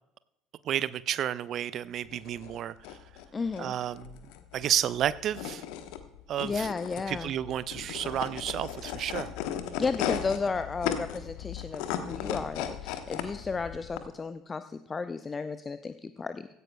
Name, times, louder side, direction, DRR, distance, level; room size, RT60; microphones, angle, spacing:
voice 1, 0.6-3.0 3.6-4.2 4.5-5.6 6.3-6.7 7.1-9.3, right 11 dB, 45° right, 18 dB, 0.4 m, -31 dB
sound 1, 2.0-14.0, left 10 dB, 60° left, 1.0 m, -37 dB
voice 2, 3.3-3.7 6.4-7.3 9.8-16.5, left 4 dB, 25° left, 12 dB, 0.5 m, -33 dB
16.5 x 15.0 x 2.3 m, 0.87 s
figure-of-eight pair, 60°, 0 cm